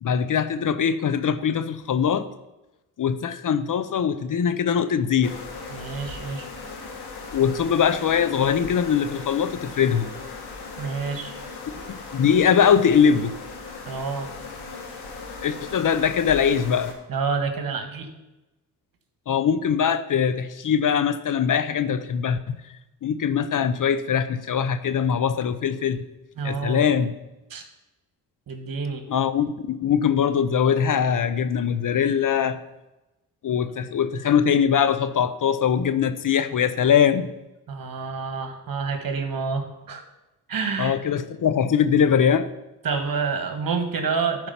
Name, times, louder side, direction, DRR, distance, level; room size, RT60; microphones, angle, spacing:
voice 1, 0.0-2.3 3.0-5.4 7.3-10.1 11.7-13.3 15.4-16.9 19.3-22.6 23.0-26.0 26.4-27.1 29.1-32.6 33.4-37.3 40.8-42.5, left 7 dB, 50° left, 11 dB, 0.8 m, -22 dB
sound 1, 5.2-16.9, left 4 dB, 75° left, 1.9 m, -38 dB
voice 2, 5.7-6.5 10.8-11.4 13.8-14.3 17.1-18.1 26.4-26.8 27.5-27.6 28.5-29.0 37.7-40.0 40.5-41.0 42.8-44.5, right 5 dB, 60° right, 6 dB, 1.7 m, -28 dB
12.0 x 4.8 x 5.7 m, 1.0 s
supercardioid pair, 60°, 40 cm